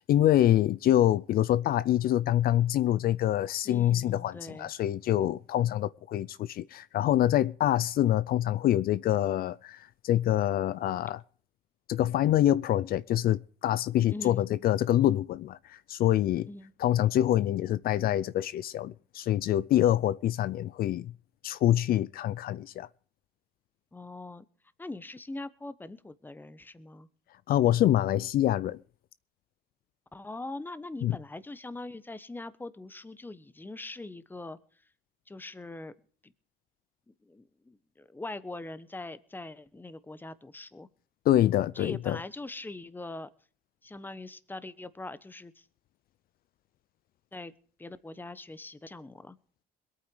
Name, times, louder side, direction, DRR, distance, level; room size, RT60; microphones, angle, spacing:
voice 1, 0.0-11.2 11.9-16.5 16.8-21.1 21.4-22.9 27.5-28.8 31.0-31.1 41.3-42.2, left 12 dB, 60° left, 0.5 m, -26 dB
voice 2, 3.6-4.7 14.1-14.5 16.5-16.7 23.9-24.4 24.8-27.1 30.1-34.6 35.3-35.9 36.2-36.3 37.1-40.9 41.7-43.3 43.8-45.6 47.3-47.5 47.8-49.4, left 2 dB, 10° left, 1.1 m, -42 dB
21.5 x 9.1 x 4.7 m
cardioid pair, 110°, 17 cm